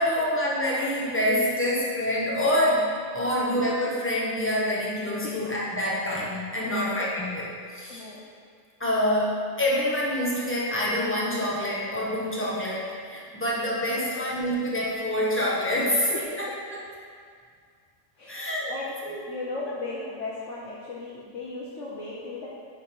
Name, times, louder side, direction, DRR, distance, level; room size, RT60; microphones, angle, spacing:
voice 1, 0.0-8.0 8.8-16.4 16.7-16.8 18.3-18.7 19.0-19.2, left 1 dB, 10° left, -6 dB, 1.4 m, -26 dB
voice 2, 6.6-7.0 7.9-8.2 14.1-14.3 16.1-16.5 18.2-22.5, left 3 dB, 65° left, -6 dB, 1.3 m, -37 dB
10.5 x 4.1 x 4.6 m, 2.1 s
omnidirectional pair, 1.4 m